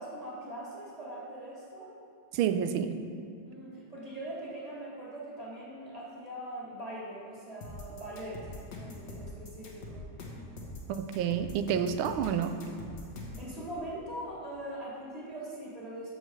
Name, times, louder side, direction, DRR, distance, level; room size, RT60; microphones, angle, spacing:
voice 1, 0.0-1.9 3.4-8.5 8.8-10.1 13.4-16.2, right 1 dB, 20° right, -7 dB, 2.1 m, -41 dB
voice 2, 2.3-3.0 10.9-12.6, right 8 dB, 85° right, 9 dB, 1.4 m, -29 dB
sound 1, 7.6-13.5, left 2 dB, 55° left, 1.7 m, -43 dB
14.0 x 6.5 x 3.2 m, 2.3 s
omnidirectional pair, 2.2 m